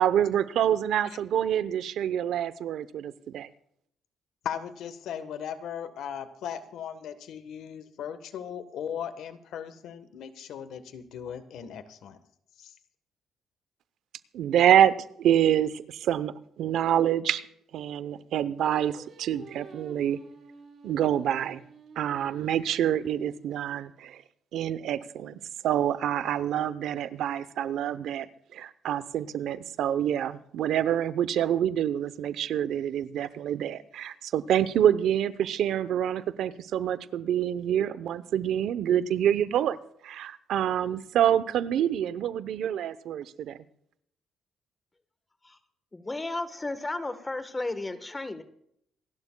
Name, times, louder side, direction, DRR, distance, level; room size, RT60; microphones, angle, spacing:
voice 1, 0.0-3.5 14.3-17.5 17.7-20.2 20.8-21.6 22.0-24.2 24.5-28.3 28.5-39.8 40.0-43.6, right 10 dB, 75° right, 15 dB, 0.7 m, -26 dB
voice 2, 4.4-12.2 12.6-12.7, left 8 dB, 80° left, 11 dB, 1.2 m, -38 dB
Singing, 18.6-23.9, right 4 dB, 55° right, 4.0 m, -51 dB
voice 3, 45.9-48.4, left 2 dB, 20° left, 11 dB, 1.2 m, -33 dB
27.0 x 12.0 x 2.3 m, 0.70 s
cardioid pair, 90°, 0 cm